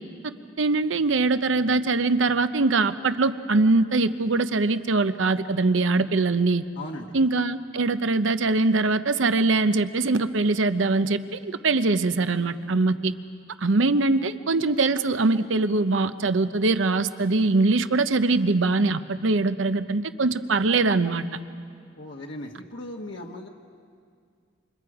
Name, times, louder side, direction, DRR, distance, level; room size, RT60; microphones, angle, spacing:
voice 1, 0.6-6.6 7.1-13.1 13.6-21.2, right 3 dB, 85° right, 11 dB, 0.8 m, -22 dB
voice 2, 6.7-7.1 22.0-23.5, left 1 dB, 70° left, 0 dB, 1.3 m, -37 dB
28.5 x 26.5 x 4.9 m, 2.2 s
head